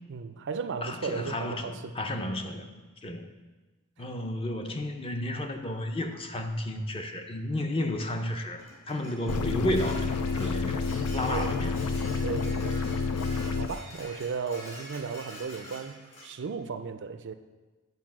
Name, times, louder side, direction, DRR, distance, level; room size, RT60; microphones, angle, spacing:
voice 1, 0.1-1.9 11.3-11.6 12.2-12.8 13.6-17.3, right 5 dB, 55° right, 10 dB, 0.4 m, -35 dB
voice 2, 0.8-2.7 3.0-3.3 4.0-10.8 11.1-11.8, left 1 dB, 25° left, 5 dB, 0.6 m, -32 dB
Dishes pots and pans, 8.6-16.3, equal, 60° left, 2.8 m, -46 dB
sound 1, 9.3-13.7, left 4 dB, 80° left, 0.5 m, -29 dB
9.6 x 4.7 x 6.0 m, 1.2 s
head